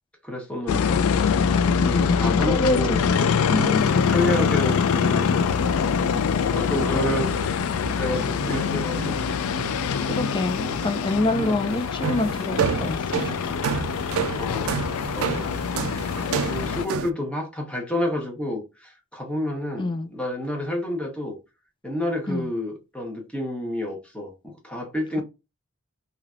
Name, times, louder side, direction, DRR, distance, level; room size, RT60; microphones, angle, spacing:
voice 1, 0.2-1.0 1.6-3.0 3.5-6.2 6.5-7.3 8.0-9.2 14.4-14.9 15.1-15.5 16.4-21.4 21.8-25.2, left 1 dB, 5° left, 1.1 m, -30 dB
sound 1, 0.7-16.9, left 6 dB, 85° left, 0.4 m, -24 dB
voice 2, 2.5-3.0 3.5-4.0 10.1-13.8 15.3-15.5 19.8-20.1 22.3-22.5, left 2 dB, 25° left, 0.4 m, -27 dB
sound 2, 4.8-4.9 5.4-5.6 6.1-6.4 6.6-6.9 7.3-9.3 9.6-11.0 11.4-11.7 12.0-17.1, right 7 dB, 80° right, 0.4 m, -30 dB
3.2 x 2.8 x 2.4 m
head